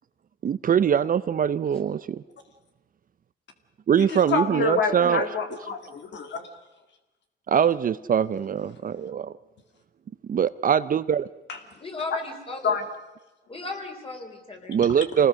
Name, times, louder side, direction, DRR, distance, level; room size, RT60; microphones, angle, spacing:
voice 1, 0.4-2.2 3.9-5.3 7.5-9.3 10.3-11.3 14.7-15.3, right 8 dB, 45° right, 15 dB, 0.6 m, -23 dB
voice 2, 4.0-6.4 12.6-12.8, left 5 dB, 65° left, 6 dB, 2.3 m, -27 dB
voice 3, 11.8-12.8 13.5-14.8, left 3 dB, 30° left, 3 dB, 4.7 m, -35 dB
26.0 x 19.0 x 6.4 m, 1.0 s
cardioid pair, 90°, 20 cm